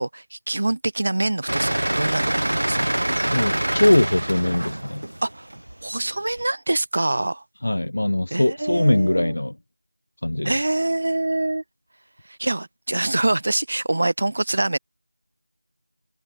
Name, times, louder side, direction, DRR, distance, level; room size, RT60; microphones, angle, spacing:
voice 1, 0.0-2.9 5.2-5.5 5.8-7.4 8.3-9.3 10.4-11.6 12.4-14.8, right 2 dB, 40° right, 4.7 m, -25 dB
sound 1, 1.5-6.4, right 1 dB, 70° right, 2.9 m, -25 dB
voice 2, 3.3-5.0 7.6-9.6 10.2-10.5, left 1 dB, 55° left, 5.6 m, -21 dB
figure-of-eight pair, 175°, 0 cm